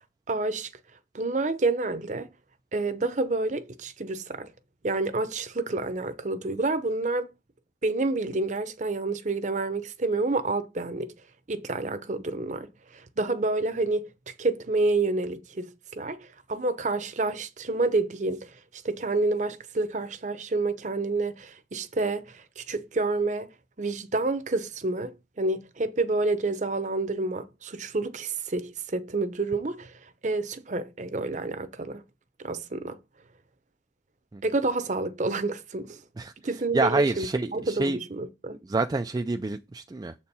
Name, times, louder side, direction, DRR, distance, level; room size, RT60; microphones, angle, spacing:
voice 1, 0.3-0.7 1.1-2.3 2.7-4.5 4.8-7.3 7.8-11.1 11.5-12.7 12.9-23.5 23.8-29.9 30.2-32.0 32.4-33.0 34.4-36.0 36.4-37.3 37.5-38.6, right 3 dB, 40° right, 0.7 m, -29 dB
voice 2, 36.2-38.0 38.6-40.2, right 3 dB, 20° right, 0.3 m, -28 dB
7.3 x 4.4 x 5.5 m
head